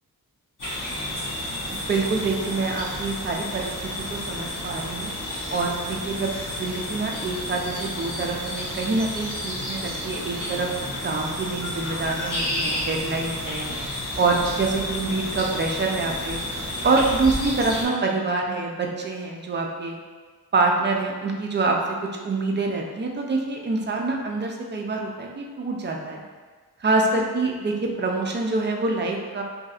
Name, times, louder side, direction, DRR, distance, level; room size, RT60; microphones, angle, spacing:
sound 1, 0.6-17.9, left 1 dB, 55° left, 1.2 m, -31 dB
voice 1, 1.7-3.7 4.1-5.1 5.5-10.7 11.0-13.7 14.2-16.4 16.8-19.9 20.5-26.2 26.8-29.4, right 3 dB, 30° right, 1 dB, 0.4 m, -26 dB
3.1 x 2.6 x 2.4 m, 1.5 s
wide cardioid pair, 70°, 38 cm